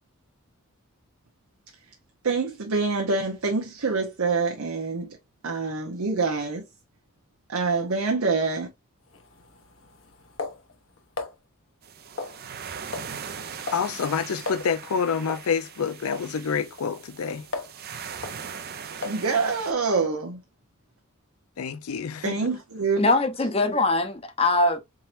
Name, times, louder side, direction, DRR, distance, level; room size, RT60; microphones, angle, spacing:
voice 1, 2.2-5.2 5.4-6.6 7.5-8.7 18.9-20.4 22.2-23.0, right 4 dB, 85° right, 0.8 m, -26 dB
sound 1, 9.1-11.3 12.2-12.6 12.9-13.2 13.4-13.9 14.2-14.3 14.5-14.7 15.3-15.5 16.1-16.3 16.8-17.8 18.2-18.4 19.0-19.3, left 3 dB, 65° left, 0.9 m, -36 dB
sound 2, 11.8-19.7, right 7 dB, 45° right, 0.5 m, -40 dB
voice 2, 13.7-17.4 21.6-22.4, left 6 dB, 85° left, 0.5 m, -27 dB
voice 3, 23.0-24.8, left 2 dB, 25° left, 0.7 m, -22 dB
4.3 x 3.7 x 2.5 m
head